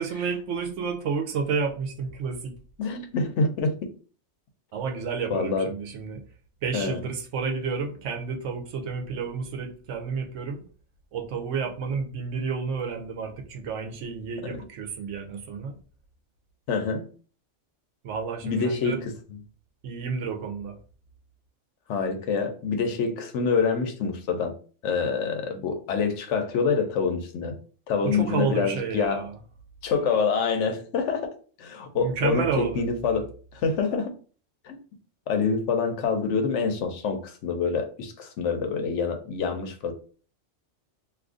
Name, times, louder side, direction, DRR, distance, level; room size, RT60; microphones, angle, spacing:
voice 1, 0.0-2.6 4.7-6.2 6.6-10.6 11.1-15.8 18.0-19.0 19.8-20.8 28.0-29.4 31.9-32.9, right 5 dB, 85° right, 4 dB, 1.0 m, -30 dB
voice 2, 2.8-3.7 5.3-5.7 6.7-7.0 16.7-17.1 18.4-19.4 21.9-24.6 24.8-27.6 27.9-29.3 29.8-31.3 31.6-34.1 34.6-34.8 35.3-39.9, left 5 dB, 80° left, 5 dB, 1.0 m, -26 dB
2.6 x 2.5 x 3.6 m, 0.41 s
omnidirectional pair, 1.2 m